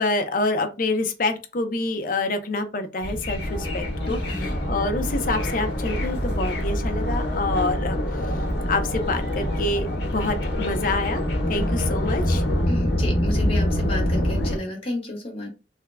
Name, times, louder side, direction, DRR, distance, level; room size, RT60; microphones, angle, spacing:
voice 1, 0.0-8.0 8.7-9.9 10.1-11.2 11.5-12.4, left 2 dB, 50° left, 0.6 m, -27 dB
sound 1, 3.0-14.6, left 1 dB, 75° left, 1.1 m, -25 dB
voice 2, 12.7-15.5, left 1 dB, 35° left, 1.3 m, -32 dB
3.5 x 2.2 x 3.3 m
head